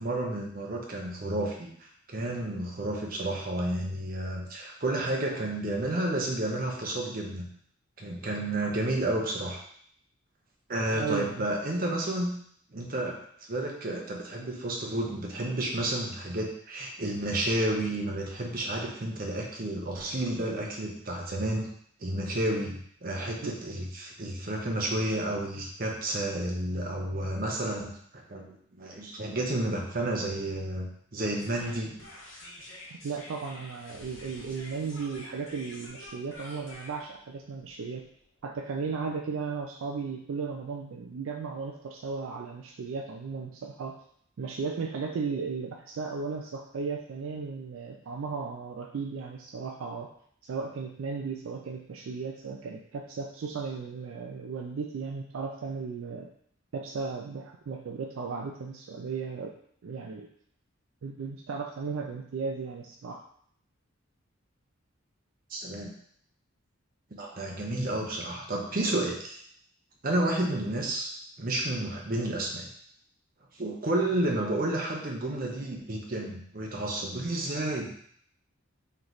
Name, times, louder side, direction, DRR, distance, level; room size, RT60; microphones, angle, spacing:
voice 1, 0.0-7.5 8.0-9.6 10.7-12.3 12.7-13.2 13.5-21.7 22.0-31.9 65.5-65.9 67.2-69.4 70.0-71.1 71.4-72.7 73.6-77.9, right 1 dB, 40° right, 0 dB, 0.7 m, -31 dB
voice 2, 10.9-11.5 23.4-23.5 32.9-38.0 38.4-43.9 44.4-50.1 50.4-56.3 56.7-59.5 59.8-60.3 61.0-63.2, right 5 dB, 70° right, 2 dB, 0.4 m, -35 dB
sound 1, 31.4-38.5, left 1 dB, 70° left, 1.0 m, -47 dB
3.3 x 3.0 x 3.9 m, 0.65 s
head